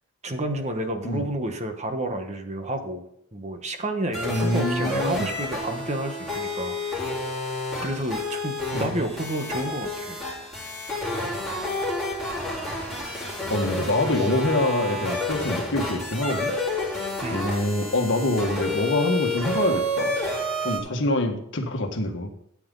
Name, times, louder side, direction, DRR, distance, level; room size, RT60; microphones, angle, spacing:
voice 1, 0.2-3.0 3.3-6.8 7.8-10.2 17.2-17.5, right 1 dB, 30° right, 6 dB, 1.2 m, -30 dB
sound 1, 4.1-20.8, left 1 dB, ahead, 4.1 m, -30 dB
voice 2, 4.3-5.3 8.7-8.9 13.5-16.5 17.3-20.1 20.6-22.3, left 1 dB, 55° left, 5 dB, 1.6 m, -25 dB
13.5 x 8.7 x 4.0 m, 0.72 s
head